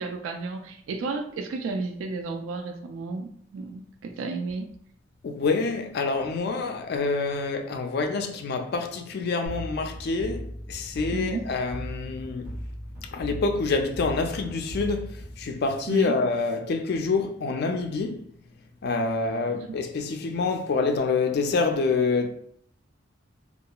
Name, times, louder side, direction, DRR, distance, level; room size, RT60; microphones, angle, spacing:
voice 1, 0.0-4.7 11.1-11.5 15.9-16.1 19.5-19.8, right 3 dB, 90° right, 0.3 m, -32 dB
voice 2, 5.2-12.5 13.1-18.2 18.8-22.3, left 4 dB, 55° left, 0.3 m, -27 dB
sound 1, 9.5-16.1, equal, 50° right, 1.0 m, -38 dB
2.8 x 2.3 x 2.2 m
head